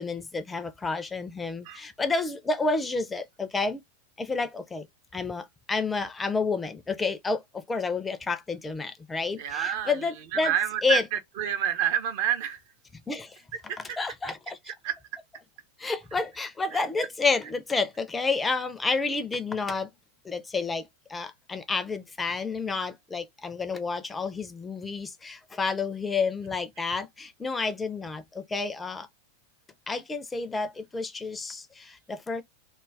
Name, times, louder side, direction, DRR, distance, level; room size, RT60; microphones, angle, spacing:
voice 1, 0.0-3.8 4.2-4.9 5.1-10.5 10.8-11.0 13.1-13.4 14.0-14.6 15.8-19.9 20.2-20.8 21.1-29.1 29.9-32.4, left 4 dB, 15° left, 0.4 m, -30 dB
voice 2, 9.4-12.6 13.5-14.0 14.7-15.2 16.7-16.8 26.8-26.9, right 9 dB, 50° right, 0.5 m, -29 dB
2.3 x 2.1 x 3.2 m
figure-of-eight pair, 90°, 0 cm